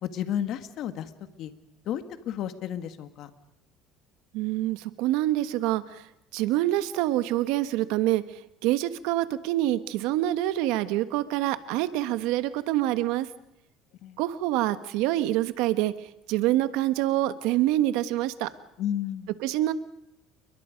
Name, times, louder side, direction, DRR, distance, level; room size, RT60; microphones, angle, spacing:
voice 1, 0.0-1.1 1.4-1.5 1.9-3.3 14.0-14.2 18.8-19.3, left 10 dB, 60° left, 9 dB, 1.9 m, -32 dB
voice 2, 4.3-6.1 6.3-13.3 14.2-18.5 19.4-19.7, right 15 dB, 80° right, 12 dB, 1.3 m, -26 dB
30.0 x 23.0 x 5.3 m, 0.83 s
cardioid pair, 120°, 0 cm